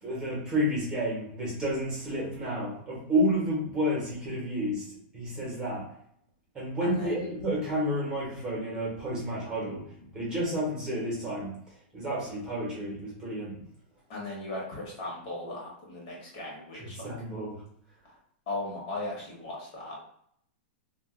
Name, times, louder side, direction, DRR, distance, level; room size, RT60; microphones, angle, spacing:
voice 1, 0.0-4.8 5.1-5.9 6.5-9.8 10.1-11.5 11.9-13.6 16.7-17.6, equal, 15° right, -5 dB, 1.0 m, -30 dB
voice 2, 6.8-7.2 14.1-17.1 18.5-20.0, left 2 dB, 40° left, -3 dB, 1.1 m, -37 dB
2.5 x 2.3 x 3.6 m, 0.68 s
supercardioid pair, 165°, 6 cm